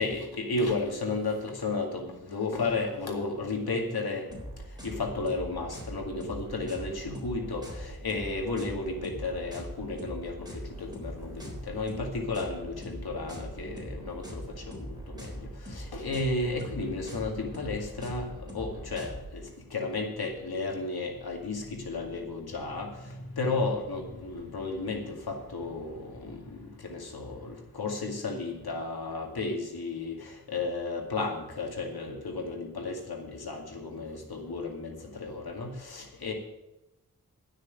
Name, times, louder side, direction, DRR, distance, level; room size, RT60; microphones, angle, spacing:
voice 1, 0.0-4.3 4.8-15.3 15.6-19.4 19.7-36.3, left 3 dB, 85° left, 1 dB, 2.2 m, -33 dB
sound 1, 4.3-19.3, equal, 10° right, 3.8 m, -42 dB
10.0 x 6.3 x 9.0 m, 0.93 s
cardioid pair, 55°, 36 cm